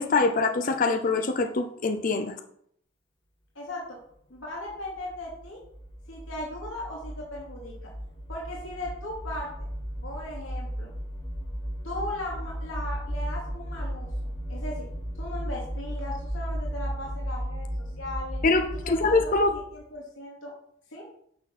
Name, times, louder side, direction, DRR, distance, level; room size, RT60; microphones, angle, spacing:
voice 1, 0.0-2.3 18.4-19.5, left 3 dB, 45° left, 6 dB, 0.6 m, -24 dB
voice 2, 3.5-4.0 4.3-5.6 6.1-7.9 8.3-9.5 10.0-10.9 11.8-14.9 15.2-17.7 18.0-18.4 18.8-19.3 19.7-20.5 20.9-21.0, left 1 dB, 85° left, -4 dB, 2.7 m, -37 dB
sound 1, 4.5-19.8, equal, 25° left, 1.6 m, -35 dB
9.6 x 5.9 x 4.2 m, 0.68 s
head